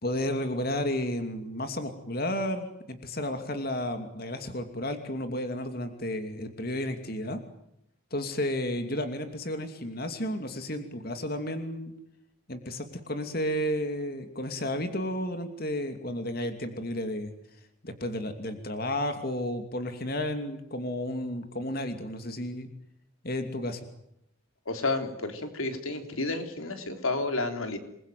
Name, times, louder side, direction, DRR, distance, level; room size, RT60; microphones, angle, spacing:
voice 1, 0.0-7.4 8.1-11.9 12.5-17.3 17.8-22.7 23.2-23.9, left 1 dB, 45° left, 7 dB, 2.8 m, -32 dB
voice 2, 24.7-27.8, left 2 dB, 85° left, 7 dB, 3.7 m, -31 dB
28.0 x 22.0 x 9.4 m, 0.76 s
head